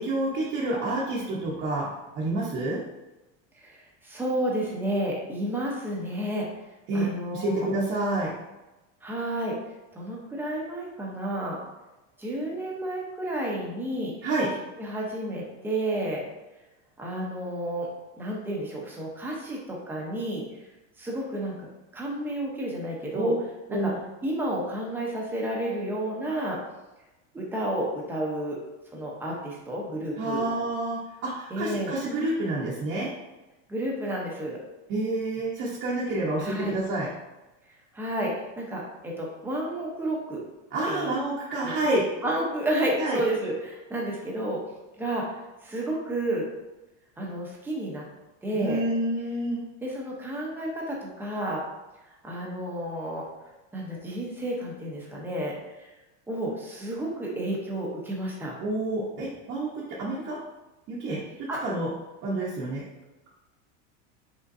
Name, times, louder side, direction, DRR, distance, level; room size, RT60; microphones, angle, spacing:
voice 1, 0.0-2.8 6.9-8.4 14.2-14.5 23.1-23.4 23.7-24.0 30.2-33.1 34.9-37.1 40.7-42.1 43.0-43.2 48.5-49.7 58.6-60.4 60.9-61.9 62.2-62.9, right 2 dB, 35° right, -6 dB, 0.8 m, -28 dB
voice 2, 3.6-6.5 6.9-7.7 9.0-9.6 9.9-11.6 12.2-14.1 14.8-16.2 17.0-17.9 18.2-20.5 21.0-21.7 21.9-23.3 23.7-23.9 24.2-26.6 27.3-28.6 28.9-30.4 31.5-31.9 33.7-34.6 36.4-36.8 37.9-40.4 40.9-41.1 41.6-41.7 42.2-44.6 45.0-46.5 47.2-48.0 48.4-48.8 49.8-51.6 52.2-53.3 53.7-55.9 56.3-58.5 61.5-61.6, right 1 dB, 5° right, -3 dB, 0.7 m, -31 dB
5.3 x 3.7 x 2.5 m, 1.1 s
supercardioid pair, 155°, 39 cm